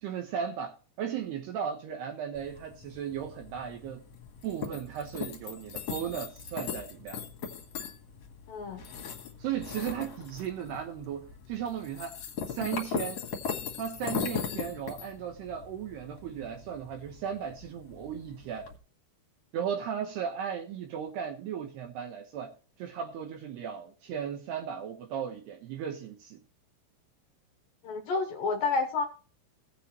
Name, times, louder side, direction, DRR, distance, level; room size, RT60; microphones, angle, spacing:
voice 1, 0.0-4.0 4.4-7.2 9.4-12.1 12.5-13.2 13.8-18.7 19.5-22.5 22.8-26.4, right 8 dB, 70° right, 3.0 m, -36 dB
sound 1, 2.3-18.8, left 6 dB, 55° left, 2.2 m, -39 dB
voice 2, 8.5-8.8 27.8-29.0, left 4 dB, 70° left, 2.2 m, -29 dB
16.5 x 8.6 x 3.1 m
omnidirectional pair, 5.4 m